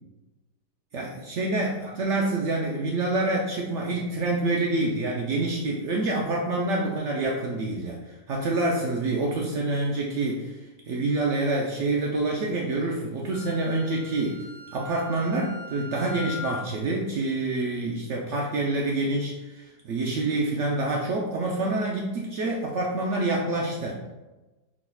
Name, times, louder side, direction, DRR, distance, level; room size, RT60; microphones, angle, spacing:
voice 1, 0.9-10.6 10.9-14.4 14.7-24.0, right 2 dB, 80° right, -2 dB, 0.6 m, -27 dB
Wind instrument woodwind instrument, 13.3-16.7, left 3 dB, 60° right, 1.5 m, -40 dB
6.1 x 3.7 x 2.3 m, 1.1 s
omnidirectional pair, 1.9 m